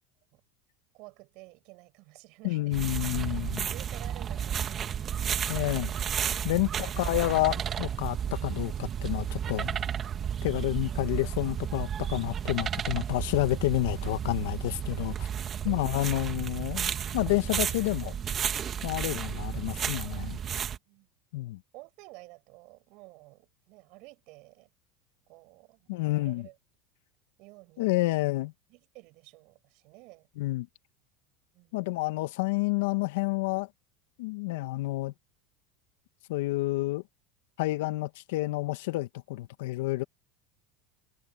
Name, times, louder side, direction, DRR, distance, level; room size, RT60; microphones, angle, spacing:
voice 1, 0.9-3.0 3.4-5.3 15.6-16.2 20.7-21.1 21.7-24.7 25.3-26.6 27.4-28.1 28.7-30.3 31.5-32.0, right 25 dB, 60° right, 7.5 m, -52 dB
voice 2, 2.4-3.7 5.5-5.9 6.4-9.9 10.4-15.3 15.7-18.2 18.8-20.4 21.3-21.6 25.9-26.5 27.8-28.5 30.4-30.7 31.7-33.7 34.2-35.1 36.3-37.0 37.6-40.0, left 19 dB, 75° left, 1.8 m, -29 dB
sound 1, 2.7-20.8, right 8 dB, 35° right, 2.1 m, -32 dB
hypercardioid pair, 100°, 0 cm